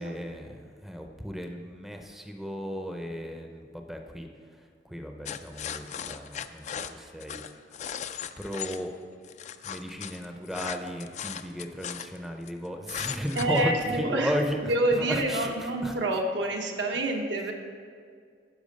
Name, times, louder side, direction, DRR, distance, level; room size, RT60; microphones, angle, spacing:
voice 1, 0.0-7.4 8.4-8.9 9.6-14.6 14.9-15.9 17.0-17.2, equal, ahead, 3 dB, 0.6 m, -35 dB
sound 1, 5.2-8.8 9.2-12.5 12.9-13.6, left 8 dB, 40° left, 0.3 m, -37 dB
voice 2, 13.4-14.3 14.7-17.5, right 2 dB, 80° right, 2 dB, 1.1 m, -27 dB
10.0 x 6.0 x 5.2 m, 2.1 s
head